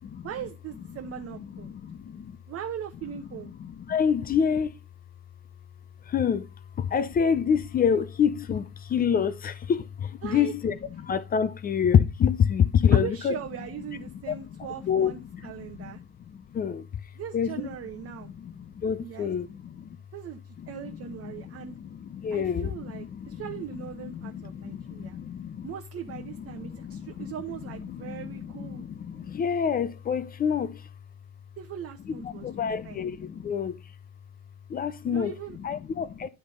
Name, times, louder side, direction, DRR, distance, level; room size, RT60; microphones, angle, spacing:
voice 1, 0.2-1.8 2.5-3.5 10.2-10.5 12.9-16.0 17.2-18.3 19.0-19.3 20.1-21.7 22.3-25.2 25.6-28.9 31.6-33.0 35.0-35.6, right 9 dB, 30° right, 0.9 m, -39 dB
voice 2, 1.3-2.4 3.3-4.8 6.0-13.4 14.3-14.4 14.8-17.7 18.0-20.0 20.6-20.7 21.2-23.6 24.0-25.7 26.1-30.9 32.0-33.9 34.7-36.3, left 7 dB, 20° left, 0.5 m, -28 dB
10.0 x 3.4 x 5.3 m
hypercardioid pair, 85°, 42 cm